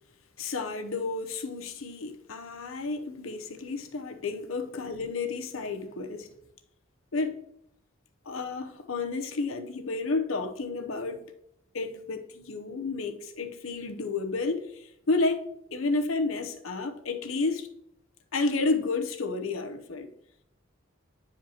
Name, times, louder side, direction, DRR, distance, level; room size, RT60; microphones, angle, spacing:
voice 1, 0.4-6.3 7.1-7.4 8.3-11.3 11.7-17.7 18.3-20.1, left 3 dB, 90° left, 0.7 m, -31 dB
9.9 x 5.1 x 2.9 m
head